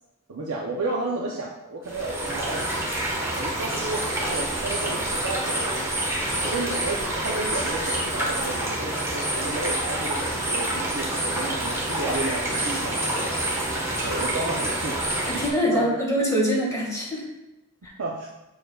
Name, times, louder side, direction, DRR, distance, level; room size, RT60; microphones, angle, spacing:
voice 1, 0.3-2.7 3.4-5.9 6.4-13.5 14.0-15.0 15.6-15.9 18.0-18.3, right 2 dB, 85° right, -3 dB, 0.7 m, -32 dB
sound 1, 1.9-15.5, right 1 dB, 15° right, 1.3 m, -27 dB
voice 2, 15.3-17.2 17.8-17.9, equal, 15° left, -4 dB, 1.8 m, -24 dB
7.0 x 6.3 x 2.4 m, 0.96 s
head